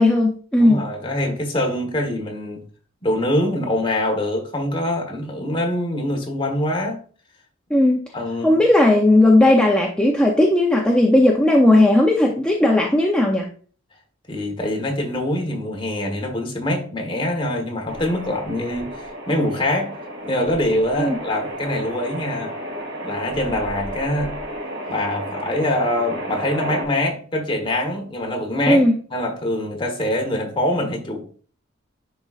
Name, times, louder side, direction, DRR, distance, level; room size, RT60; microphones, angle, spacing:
voice 1, 0.0-0.8 7.7-8.0 8.4-13.5 21.0-21.2 28.7-28.9, left 1 dB, 5° left, 0.6 m, -16 dB
voice 2, 0.6-2.6 3.0-7.0 8.1-8.6 14.3-18.9 19.3-19.9 20.2-22.5 23.0-24.3 24.9-28.8 29.1-31.4, left 1 dB, 25° left, 1.2 m, -24 dB
sound 1, 17.9-26.8, equal, 65° right, 2.2 m, -32 dB
10.0 x 3.8 x 2.4 m
head